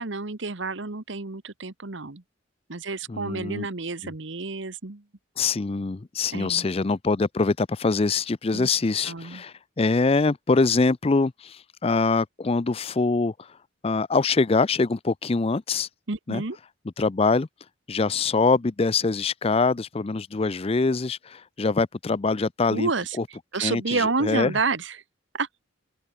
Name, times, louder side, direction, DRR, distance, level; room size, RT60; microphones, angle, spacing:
voice 1, 0.0-2.2 2.7-5.0 6.3-6.7 8.5-8.7 9.1-9.4 16.1-16.6 22.7-23.2 23.5-25.0 25.3-25.5, right 3 dB, 65° right, 1.3 m, -29 dB
voice 2, 3.1-3.7 4.0-4.1 5.4-13.6 13.8-15.9 16.3-16.4 17.0-17.5 17.9-22.9 23.2-23.3 23.6-24.6, left 4 dB, 30° left, 0.5 m, -24 dB
open air
head